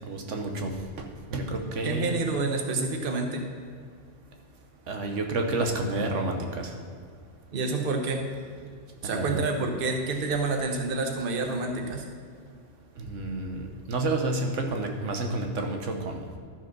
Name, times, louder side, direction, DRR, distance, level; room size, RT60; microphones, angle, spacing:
voice 1, 0.0-0.7 1.0-2.2 4.9-6.7 9.0-9.4 13.0-16.2, right 2 dB, 85° right, 3 dB, 1.4 m, -30 dB
voice 2, 1.8-3.4 7.5-8.2 9.0-12.0, right 3 dB, 50° right, 4 dB, 1.2 m, -28 dB
12.5 x 5.1 x 6.0 m, 2.2 s
omnidirectional pair, 1.2 m